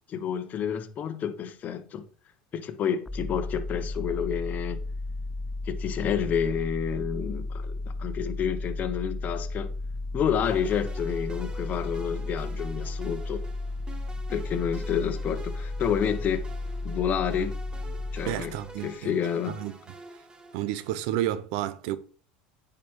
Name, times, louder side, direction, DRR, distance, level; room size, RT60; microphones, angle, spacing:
voice 1, 0.1-2.0 2.5-4.8 5.7-9.7 10.1-13.4 14.3-16.4 16.8-17.6 18.1-18.5 18.8-19.6, left 8 dB, 40° left, 1.1 m, -29 dB
sound 1, 3.1-18.8, left 2 dB, 10° left, 0.4 m, -34 dB
sound 2, 10.4-21.1, right 2 dB, 20° right, 1.5 m, -47 dB
voice 2, 18.3-19.1 19.5-19.8 20.5-22.0, right 13 dB, 70° right, 0.7 m, -30 dB
9.2 x 5.1 x 4.6 m
supercardioid pair, 100°, 4 cm